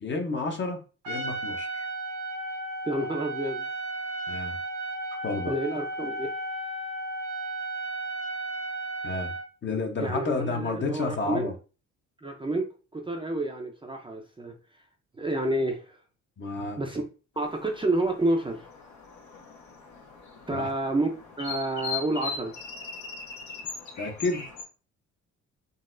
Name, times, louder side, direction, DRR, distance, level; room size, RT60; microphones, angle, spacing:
voice 1, 0.0-1.8 4.3-4.6 5.2-5.5 9.0-9.3 9.6-11.5 16.4-16.8 20.5-20.7 24.0-24.5, left 3 dB, 40° left, 3 dB, 0.8 m, -31 dB
Trumpet, 1.0-9.5, right 2 dB, 85° right, 1.3 m, -34 dB
voice 2, 2.8-3.7 5.5-6.3 10.0-11.5 12.2-12.7 12.9-14.5 15.2-16.0 16.8-17.0 17.4-18.6 20.5-21.1 21.4-22.5, right 1 dB, 15° right, 2 dB, 0.5 m, -29 dB
sound 1, 17.4-24.6, left 5 dB, 70° left, 1.0 m, -40 dB
3.9 x 2.0 x 2.5 m, 0.34 s
cardioid pair, 90°, 30 cm